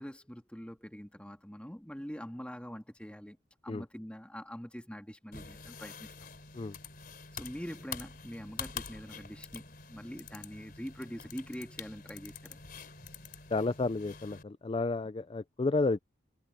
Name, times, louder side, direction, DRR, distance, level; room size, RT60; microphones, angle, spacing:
voice 1, 0.0-3.4 3.6-6.1 7.3-12.6, equal, 5° left, 1.7 m, -44 dB
sound 1, 5.3-14.4, left 6 dB, 45° left, 4.0 m, -46 dB
voice 2, 13.5-16.0, left 3 dB, 25° left, 0.3 m, -31 dB
head